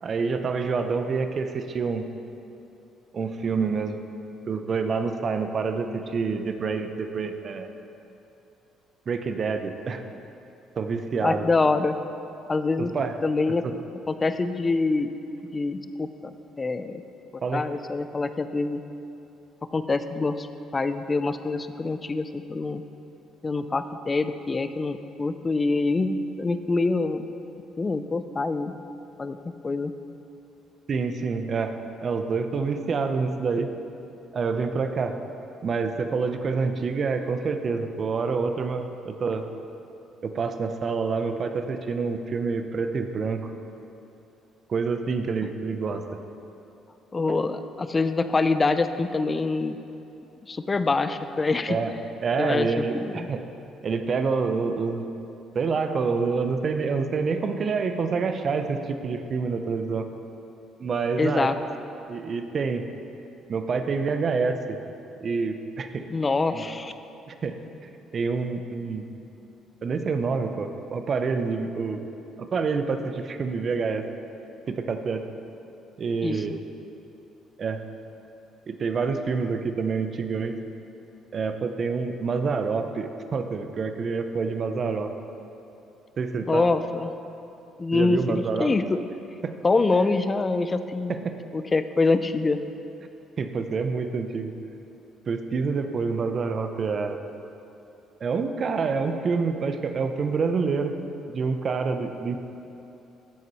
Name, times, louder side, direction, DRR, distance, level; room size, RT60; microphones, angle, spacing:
voice 1, 0.0-2.1 3.1-4.0 4.5-7.7 9.1-10.0 10.8-11.5 12.8-13.1 13.6-13.7 17.4-17.6 30.9-33.7 34.3-35.2 35.6-39.4 40.2-43.5 44.7-46.0 47.3-47.4 51.7-51.9 52.2-53.4 53.8-55.1 55.5-60.1 60.8-61.5 62.1-62.8 63.5-64.8 65.2-66.0 66.5-66.6 67.3-67.5 68.1-69.0 69.8-72.1 72.4-74.0 74.7-75.2 76.0-76.6 77.6-77.8 78.7-80.6 81.3-85.1 86.2-86.6 87.9-88.7 89.4-89.5 91.1-91.4 93.4-94.5 95.3-97.2 98.2-100.9 101.3-102.4, right 4 dB, 50° right, 7 dB, 0.7 m, -27 dB
voice 2, 11.2-12.0 12.5-12.9 13.2-13.6 14.1-15.1 15.5-17.0 17.5-18.8 19.7-20.5 20.7-22.8 23.4-27.3 27.8-28.7 29.2-29.9 47.1-49.8 50.5-51.8 52.4-53.3 61.2-61.6 66.1-66.9 76.2-76.6 86.5-87.1 87.8-89.0 89.6-91.2 91.5-92.6, left 3 dB, 30° left, 11 dB, 0.5 m, -25 dB
13.0 x 7.4 x 3.1 m, 2.8 s
hypercardioid pair, 55°, 0 cm